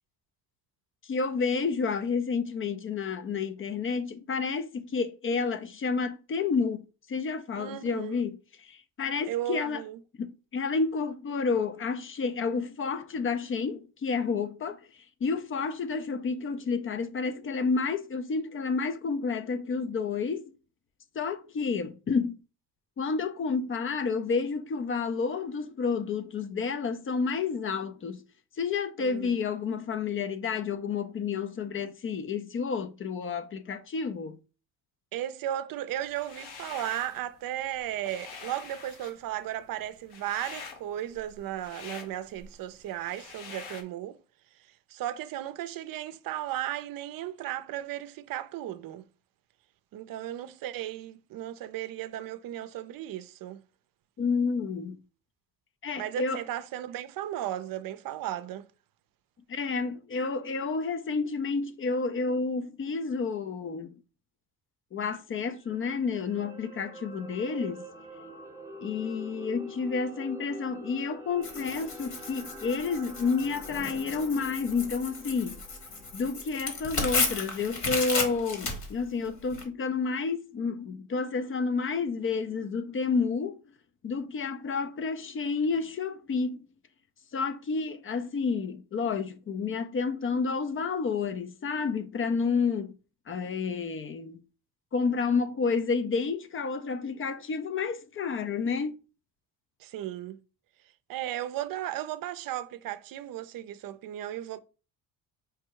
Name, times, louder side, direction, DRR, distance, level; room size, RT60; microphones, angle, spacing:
voice 1, 1.0-9.8 10.2-20.5 21.2-22.4 23.0-28.2 28.6-34.4 54.2-55.0 55.8-56.4 59.5-63.9 64.9-67.9 68.8-75.6 76.1-83.6 84.0-86.6 87.3-93.0 93.3-94.4 94.9-99.0, left 5 dB, 35° left, 0.5 m, -30 dB
voice 2, 7.6-8.2 9.3-10.0 29.0-29.4 35.1-44.2 44.9-49.0 49.9-53.6 56.0-58.7 99.8-100.4 101.1-104.6, right 12 dB, 65° right, 0.5 m, -35 dB
sound 1, 36.1-37.2 37.6-43.8, left 5 dB, 70° left, 1.1 m, -45 dB
sound 2, 65.4-77.8 78.1-78.3, right 1 dB, 10° right, 0.8 m, -46 dB
Tearing, 71.4-79.6, left 4 dB, 50° left, 1.4 m, -34 dB
4.7 x 2.2 x 4.6 m
cardioid pair, 105°, 38 cm